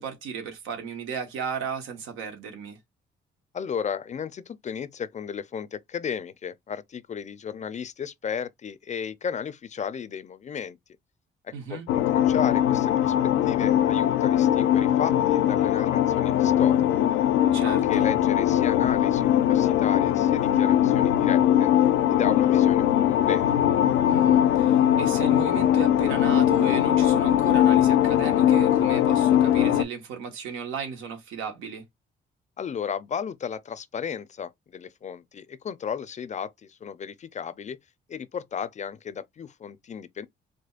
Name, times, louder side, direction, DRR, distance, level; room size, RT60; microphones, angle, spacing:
voice 1, 0.0-2.8 11.5-11.9 17.5-18.1 24.1-31.8, right 6 dB, 90° right, 1.2 m, -35 dB
voice 2, 3.5-10.8 11.4-16.8 17.6-21.7 22.1-23.6 32.6-37.8 38.1-40.3, left 7 dB, 35° left, 0.4 m, -34 dB
sound 1, 11.9-29.8, left 11 dB, 90° left, 0.5 m, -21 dB
5.0 x 2.1 x 2.4 m
cardioid pair, 90°, 20 cm